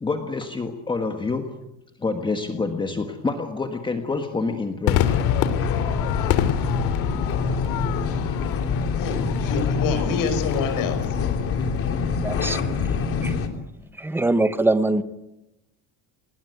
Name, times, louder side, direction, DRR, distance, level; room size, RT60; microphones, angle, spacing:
voice 1, 0.0-1.5 2.0-5.0, left 3 dB, 10° left, 5 dB, 1.5 m, -27 dB
Crowd / Fireworks, 4.9-11.4, left 11 dB, 75° left, 2.8 m, -27 dB
sound 1, 5.1-13.5, left 5 dB, 35° left, 3.1 m, -25 dB
voice 2, 9.0-11.2, left 6 dB, 55° left, 9 dB, 5.6 m, -27 dB
voice 3, 12.2-12.6 13.2-13.3 14.0-15.0, right 2 dB, 5° right, 11 dB, 1.0 m, -22 dB
29.0 x 20.5 x 9.4 m, 0.93 s
cardioid pair, 180°, 40 cm